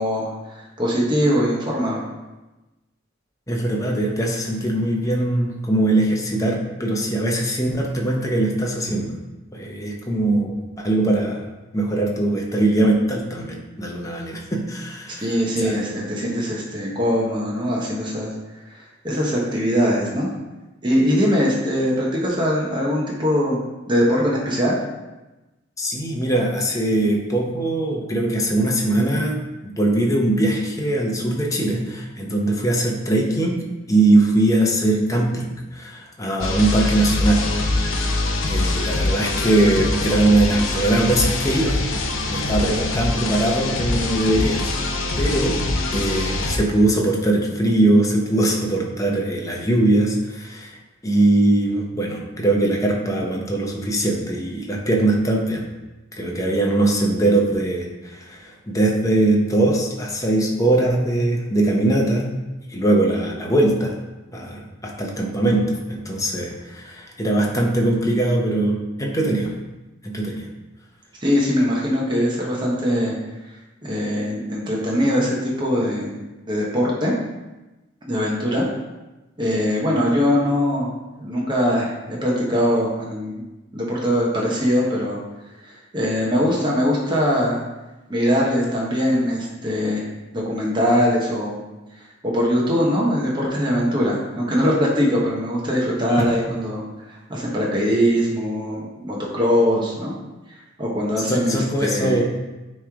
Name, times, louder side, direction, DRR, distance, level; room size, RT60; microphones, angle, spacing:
voice 1, 0.0-2.0 15.2-18.3 18.7-18.8 19.0-20.3 20.8-23.6 23.9-24.8 71.2-73.1 73.8-76.1 76.5-77.1 78.1-78.6 79.4-80.9 81.2-83.4 83.7-85.2 85.6-87.6 88.1-90.0 90.3-91.6 92.2-96.8 97.3-100.1 100.8-102.2, equal, 25° right, -4 dB, 1.1 m, -21 dB
voice 2, 3.5-9.2 9.5-11.4 11.7-15.8 25.8-33.6 33.9-38.1 38.4-41.8 42.3-44.6 45.2-45.6 45.9-50.8 51.0-55.6 56.2-62.3 62.7-63.9 64.3-69.5 70.0-70.4 96.2-96.3 101.3-102.2, right 1 dB, 15° left, -1 dB, 0.8 m, -21 dB
sound 1, 36.4-46.6, left 2 dB, 85° left, 0.7 m, -24 dB
9.5 x 3.2 x 3.6 m, 1.1 s
head